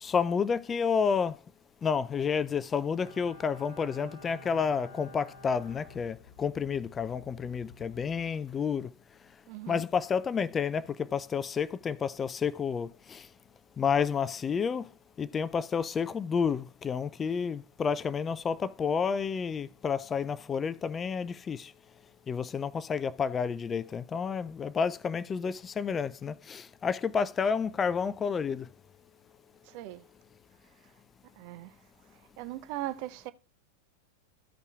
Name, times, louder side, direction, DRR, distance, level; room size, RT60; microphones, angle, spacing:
voice 1, 0.0-1.4 1.8-8.9 9.7-13.3 13.8-14.9 15.2-21.7 22.3-28.7, left 6 dB, 20° left, 0.3 m, -30 dB
Bowed string instrument, 3.0-6.7 7.0-7.1, left 2 dB, 85° right, 2.2 m, -51 dB
sound 1, 5.4-9.0, left 6 dB, 55° left, 1.0 m, -55 dB
voice 2, 9.5-9.8 29.6-30.0 31.4-31.7 32.4-33.3, right 15 dB, 45° right, 0.4 m, -39 dB
14.5 x 5.4 x 2.3 m
figure-of-eight pair, 90°, 0 cm